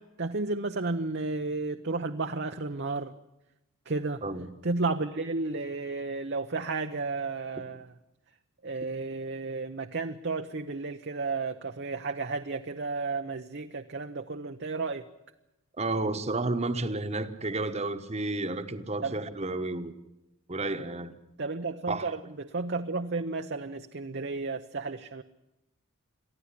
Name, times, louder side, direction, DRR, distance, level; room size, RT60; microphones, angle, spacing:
voice 1, 0.0-3.1 3.9-4.2 4.6-7.9 8.6-15.1 19.0-19.2 21.4-25.2, right 3 dB, 50° right, 0.8 m, -32 dB
voice 2, 15.8-19.9 20.5-21.1 21.9-22.1, right 2 dB, 30° right, 1.2 m, -31 dB
23.0 x 14.5 x 9.9 m
head